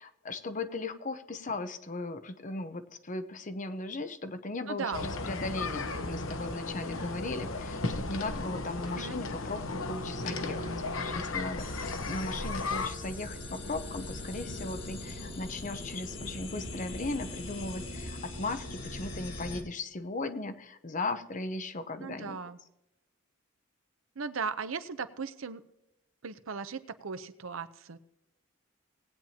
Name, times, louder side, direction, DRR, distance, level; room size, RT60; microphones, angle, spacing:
voice 1, 0.0-22.4, left 2 dB, 40° left, 9 dB, 0.8 m, -37 dB
voice 2, 4.7-5.2 8.9-9.2 22.0-22.6 24.2-25.6 26.2-28.0, right 5 dB, 80° right, 13 dB, 0.7 m, -37 dB
sound 1, 4.9-12.9, left 3 dB, 85° left, 1.0 m, -35 dB
sound 2, 11.6-19.6, left 1 dB, 65° left, 1.8 m, -41 dB
19.0 x 8.8 x 2.9 m, 0.90 s
head